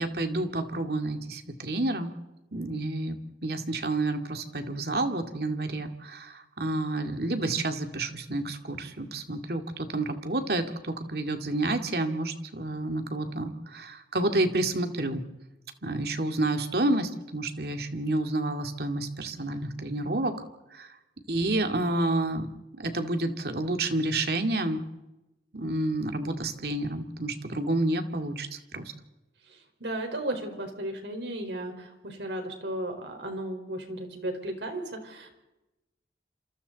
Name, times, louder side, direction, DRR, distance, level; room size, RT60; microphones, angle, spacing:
voice 1, 0.0-2.1 2.5-15.2 15.8-20.3 20.7-21.0 21.3-22.5 22.7-24.8 25.5-28.9, right 2 dB, 60° right, 5 dB, 2.2 m, -29 dB
voice 2, 29.5-35.4, right 1 dB, 80° right, 5 dB, 4.6 m, -35 dB
28.0 x 27.0 x 4.1 m, 0.97 s
head